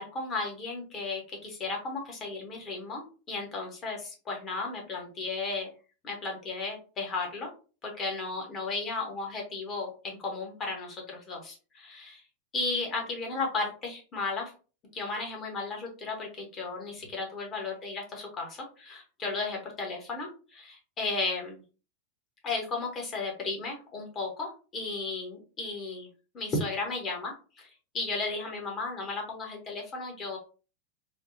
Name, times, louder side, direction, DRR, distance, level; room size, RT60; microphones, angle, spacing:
voice 1, 0.0-5.7 6.0-7.5 7.8-12.2 12.5-14.5 14.9-21.6 22.4-26.1 26.3-27.7 27.9-30.4, left 3 dB, 25° left, 1 dB, 1.1 m, -34 dB
3.5 x 2.3 x 2.6 m, 0.35 s
figure-of-eight pair, 90°, 0 cm